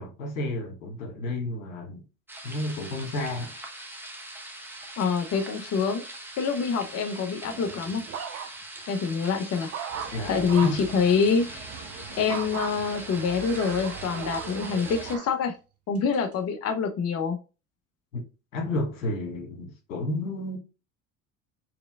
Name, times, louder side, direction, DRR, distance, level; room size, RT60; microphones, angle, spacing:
voice 1, 0.0-2.0 2.4-3.5 10.1-10.8 18.1-18.2 18.5-20.6, left 1 dB, 90° left, 1.5 m, -31 dB
sound 1, 2.3-15.2, right 1 dB, 5° right, 1.0 m, -42 dB
voice 2, 5.0-6.0 6.4-8.0 8.9-9.7 10.3-11.7 12.2-15.5 15.9-17.4, left 5 dB, 40° left, 0.7 m, -26 dB
sound 2, 7.4-8.8 9.2-10.9 12.3-12.7 13.4-15.3 15.9-16.3, right 8 dB, 40° right, 0.7 m, -38 dB
sound 3, 9.9-15.2, right 5 dB, 65° right, 1.0 m, -42 dB
4.8 x 3.0 x 2.2 m
hypercardioid pair, 80°, 40 cm